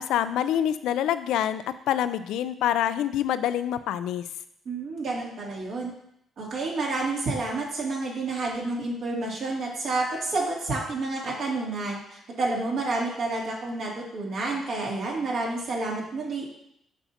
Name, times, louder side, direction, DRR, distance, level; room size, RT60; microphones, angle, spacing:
voice 1, 0.0-4.3, left 11 dB, 85° left, 12 dB, 0.3 m, -26 dB
voice 2, 4.6-5.9 6.4-16.4, right 3 dB, 70° right, -4 dB, 2.4 m, -29 dB
8.1 x 5.6 x 2.8 m, 0.73 s
cardioid pair, 90°, 0 cm